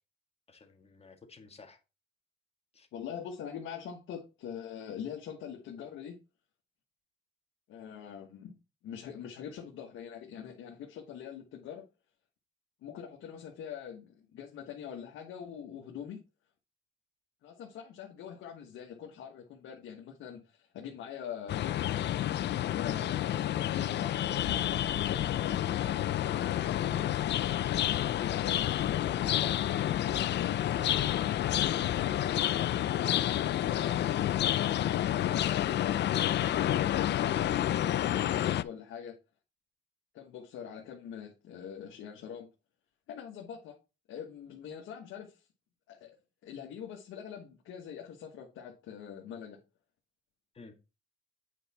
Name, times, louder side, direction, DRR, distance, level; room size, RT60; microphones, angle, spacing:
voice 1, 0.5-1.8 2.7-2.9 28.7-28.9 50.5-50.8, left 4 dB, 30° left, 1.7 m, -52 dB
voice 2, 2.9-6.1 7.7-8.5 8.8-11.8 12.8-16.2 17.4-21.9 22.7-23.3 23.5-24.7 25.1-27.1 28.2-32.3 33.5-34.3 35.2-35.9 36.2-39.2 40.1-42.5 43.1-43.8 44.1-45.5 45.9-46.2 46.4-49.6, left 8 dB, 85° left, 1.4 m, -44 dB
sound 1, 21.5-38.6, left 12 dB, 60° left, 0.5 m, -29 dB
8.2 x 4.7 x 4.1 m
cardioid pair, 90°, 20 cm